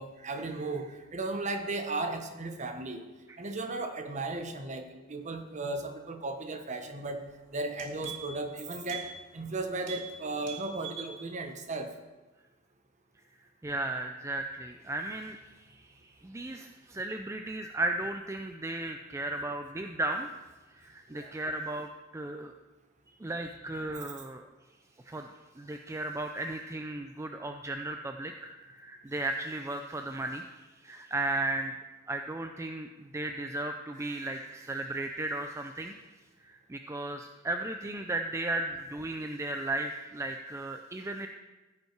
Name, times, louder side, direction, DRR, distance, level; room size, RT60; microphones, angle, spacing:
voice 1, 0.0-3.0 3.4-7.2 7.5-11.9 21.1-21.3 34.0-34.3, right 2 dB, 40° right, 6 dB, 1.0 m, -36 dB
sound 1, 7.2-7.3 7.6-8.5 8.8-9.1 9.4-9.5 9.8-10.1 10.4-11.1 11.5-11.6, right 8 dB, 70° right, 2.1 m, -42 dB
voice 2, 13.6-15.4 15.7-20.3 20.7-22.5 23.2-24.4 25.1-25.3 25.6-31.7 32.1-36.0 36.4-41.3, right 2 dB, 15° right, 5 dB, 0.4 m, -35 dB
15.5 x 5.4 x 4.5 m, 1.2 s
head